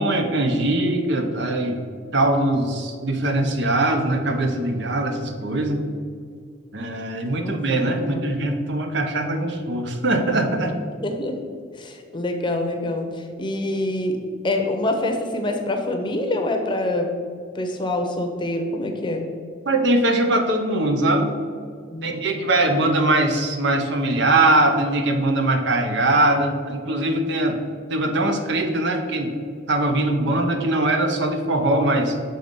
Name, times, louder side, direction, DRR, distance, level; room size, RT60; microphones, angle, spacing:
voice 1, 0.0-1.8 2.1-5.8 6.7-10.8 19.7-21.3 22.0-27.6 27.9-29.3 29.7-32.2, right 2 dB, 65° right, 5 dB, 0.8 m, -21 dB
voice 2, 7.9-8.3 11.0-11.4 11.7-14.2 14.4-17.1 17.5-19.2 21.9-22.2, left 1 dB, 25° left, 4 dB, 0.7 m, -26 dB
6.8 x 3.9 x 5.2 m, 2.2 s
head